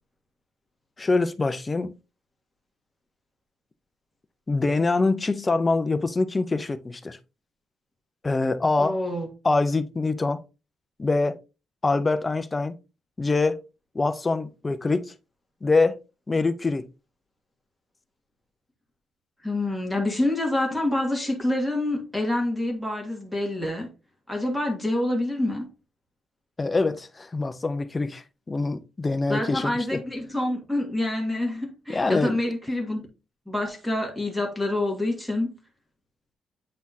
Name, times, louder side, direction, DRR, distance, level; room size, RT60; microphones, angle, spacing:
voice 1, 1.0-1.9 4.5-7.2 8.2-9.0 9.4-10.4 11.0-11.4 11.8-12.8 13.2-13.6 13.9-15.1 15.6-16.0 16.3-16.9 26.6-30.0 31.9-32.4, left 3 dB, 20° left, 0.5 m, -24 dB
voice 2, 8.8-9.3 19.4-23.9 24.3-25.7 29.3-33.1 33.5-35.6, left 1 dB, ahead, 1.7 m, -27 dB
8.5 x 4.1 x 2.7 m
cardioid pair, 165°, 0 cm